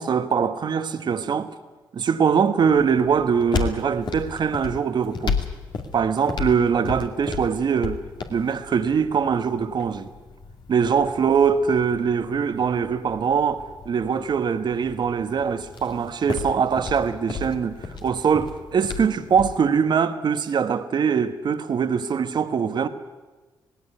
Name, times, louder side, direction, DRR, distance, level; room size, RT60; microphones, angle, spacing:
voice 1, 0.0-1.5 1.9-5.4 5.9-8.0 8.3-10.1 10.7-22.9, right 6 dB, 55° right, 1.3 m, -22 dB
sound 1, 2.6-19.6, left 5 dB, 60° left, 2.5 m, -34 dB
18.0 x 16.5 x 9.8 m
supercardioid pair, 55°, 9 cm